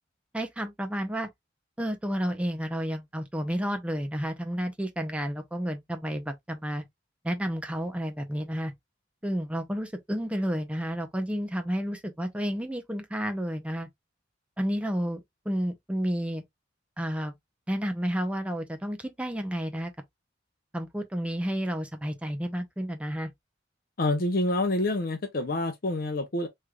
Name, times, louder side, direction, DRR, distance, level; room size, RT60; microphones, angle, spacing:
voice 1, 0.3-1.3 1.8-6.8 7.2-8.7 9.2-13.9 14.6-16.4 17.0-17.3 17.7-19.9 20.7-23.3, equal, 5° right, 0.6 m, -31 dB
voice 2, 24.0-26.5, left 2 dB, 50° left, 0.6 m, -27 dB
3.5 x 3.2 x 2.3 m
head